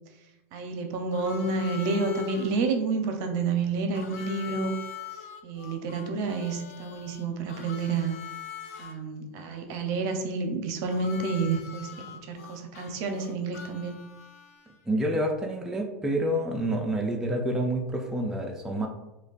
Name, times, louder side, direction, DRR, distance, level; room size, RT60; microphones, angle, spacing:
voice 1, 0.5-4.7 5.4-8.1 8.8-11.9 12.3-13.9, right 4 dB, 50° right, 5 dB, 0.6 m, -29 dB
Harmonica, 1.1-2.6 3.9-8.9 10.9-14.8, left 8 dB, 70° left, 0.5 m, -43 dB
voice 2, 14.9-18.9, right 1 dB, 5° right, 0 dB, 0.4 m, -28 dB
5.1 x 2.2 x 2.4 m, 1.0 s
hypercardioid pair, 115°, 8 cm